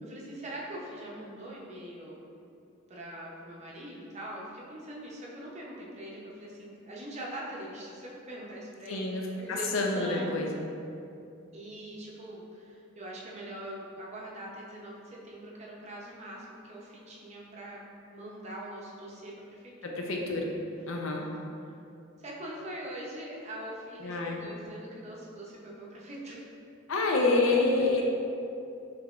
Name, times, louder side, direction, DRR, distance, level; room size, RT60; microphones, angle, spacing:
voice 1, 0.0-2.3 2.9-9.0 9.3-10.3 11.5-20.0 21.0-21.2 22.2-26.4, right 1 dB, 30° right, -4 dB, 0.6 m, -42 dB
voice 2, 8.9-9.2 9.5-10.6 19.8-20.5 20.9-21.3 24.0-24.5 26.9-28.0, left 3 dB, 70° left, 0 dB, 0.6 m, -27 dB
5.6 x 3.3 x 2.4 m, 2.6 s
head